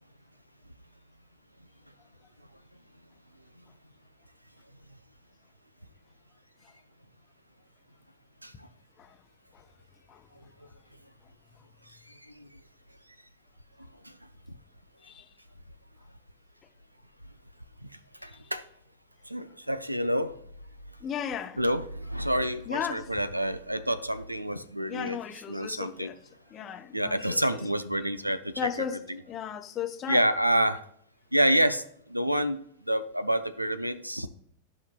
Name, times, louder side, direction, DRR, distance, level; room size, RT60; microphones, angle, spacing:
voice 1, 18.2-18.6 19.3-20.4 21.6-25.2 25.5-26.1 26.9-28.6 30.1-30.9 31.3-31.8 32.1-32.6 32.9-34.3, equal, 85° right, 0.5 m, -28 dB
voice 2, 21.0-21.6 22.7-23.1 24.9-26.2 26.5-27.4 28.6-29.0 29.3-30.3, left 8 dB, 30° left, 0.8 m, -35 dB
13.5 x 5.6 x 2.3 m
figure-of-eight pair, 90°, 0 cm